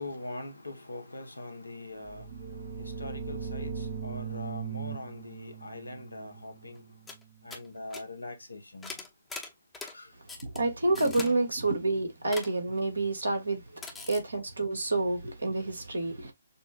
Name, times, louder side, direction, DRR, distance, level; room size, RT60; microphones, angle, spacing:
voice 1, 0.0-2.3 2.8-6.8 7.4-8.9 9.8-10.1, left 2 dB, 80° left, 1.1 m, -42 dB
sound 1, 2.0-7.6, right 6 dB, 30° right, 0.6 m, -39 dB
sound 2, 6.8-6.9 7.1-7.2 7.5-7.7 7.9-8.0 8.8-9.9 10.3-10.6 10.9-11.3 12.3-12.5 13.8-14.2, left 4 dB, 10° left, 0.9 m, -41 dB
voice 2, 10.4-13.6 14.1-16.3, right 2 dB, 75° right, 1.8 m, -28 dB
6.7 x 2.3 x 2.3 m
figure-of-eight pair, 135°, 0 cm